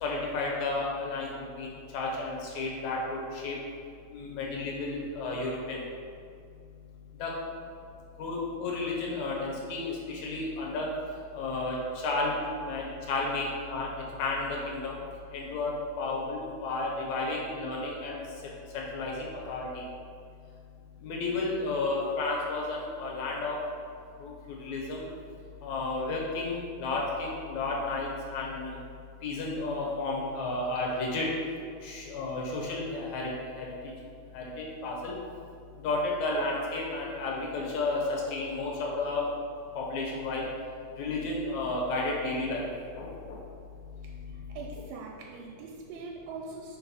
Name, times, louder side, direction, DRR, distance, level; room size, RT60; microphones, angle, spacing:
voice 1, 0.0-3.0 3.4-3.6 4.1-5.8 7.2-7.3 8.2-10.9 11.4-11.8 12.0-13.9 14.2-14.9 15.3-18.1 18.7-19.7 21.0-23.6 24.2-24.3 24.6-25.0 25.6-28.8 29.2-31.3 31.8-33.3 33.6-33.7 34.3-34.5 34.8-35.1 35.8-38.0 38.3-39.2 39.8-40.5 41.0-42.7, left 3 dB, 65° left, -3 dB, 2.0 m, -32 dB
voice 2, 44.0-46.8, right 4 dB, 85° right, -1 dB, 2.3 m, -43 dB
4.7 x 4.5 x 5.4 m, 2.3 s
omnidirectional pair, 4.1 m